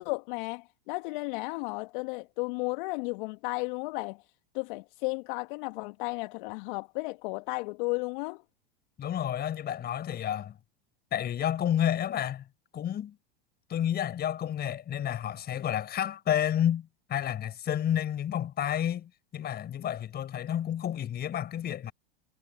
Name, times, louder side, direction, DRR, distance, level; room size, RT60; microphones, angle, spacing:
voice 1, 0.0-4.2 4.5-8.4, left 28 dB, 55° left, 1.6 m, -34 dB
voice 2, 9.0-10.6 11.1-12.5 12.7-13.2 13.7-21.9, left 10 dB, 35° left, 5.0 m, -30 dB
hypercardioid pair, 95°, 30 cm